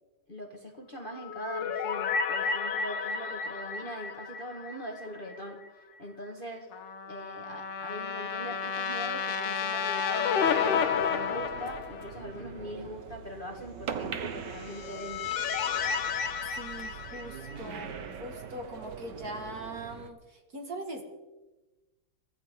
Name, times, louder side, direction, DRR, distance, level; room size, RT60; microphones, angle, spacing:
voice 1, 0.3-5.6 6.0-6.7 7.1-15.3, equal, 25° left, 1 dB, 1.6 m, -41 dB
sound 1, 1.1-5.4 5.7-5.8 9.3-12.4 14.4-17.8, left 6 dB, 65° left, 1.6 m, -32 dB
Trumpet, 6.7-11.4, left 6 dB, 90° left, 2.1 m, -34 dB
sound 2, 10.4-20.1, right 7 dB, 60° right, 1.5 m, -42 dB
voice 2, 16.6-21.0, right 1 dB, 45° right, 3 dB, 2.4 m, -41 dB
24.0 x 15.0 x 3.8 m, 1.1 s
omnidirectional pair, 2.3 m